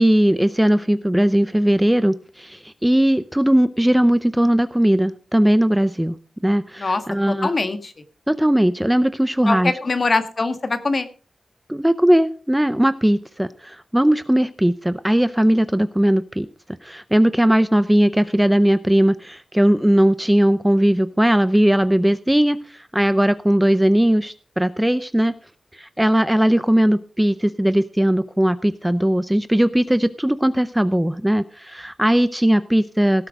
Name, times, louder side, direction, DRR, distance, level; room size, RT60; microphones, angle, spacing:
voice 1, 0.0-6.1 6.4-7.5 8.3-9.7 11.7-16.5 16.8-25.3 25.7-33.3, right 1 dB, 5° right, 13 dB, 0.5 m, -18 dB
voice 2, 7.3-7.9 9.4-11.1, left 3 dB, 40° left, 9 dB, 1.6 m, -22 dB
17.5 x 7.6 x 5.0 m, 0.39 s
wide cardioid pair, 135°, 0 cm